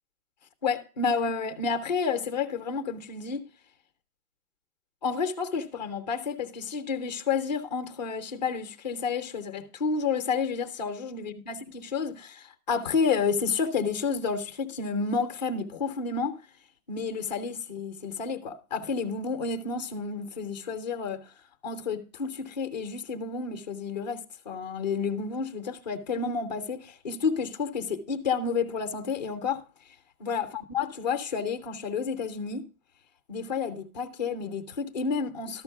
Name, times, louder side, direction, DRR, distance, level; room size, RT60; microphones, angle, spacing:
voice 1, 0.6-3.5 5.0-16.4 16.9-21.2 21.6-29.6 30.2-32.7 33.3-35.6, left 5 dB, 30° left, 0.7 m, -30 dB
13.0 x 6.2 x 4.5 m
hypercardioid pair, 175°, 45 cm